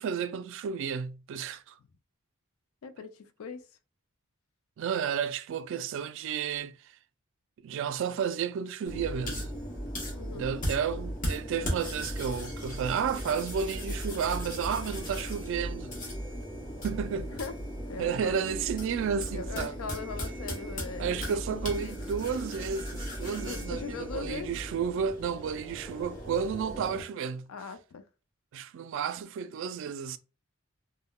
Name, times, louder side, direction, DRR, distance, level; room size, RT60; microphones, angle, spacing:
voice 1, 0.0-1.8 4.8-7.0 7.6-9.5 10.3-15.9 16.8-17.4 18.0-19.7 20.5-20.6 21.0-27.5 28.5-30.2, right 7 dB, 65° right, 0.3 m, -32 dB
voice 2, 2.8-3.6 10.1-10.5 17.4-17.5 17.9-18.4 19.3-21.9 23.5-24.5 27.5-28.0, left 5 dB, 90° left, 0.4 m, -40 dB
sound 1, 8.9-27.0, equal, 40° left, 1.0 m, -37 dB
3.5 x 2.1 x 2.2 m
head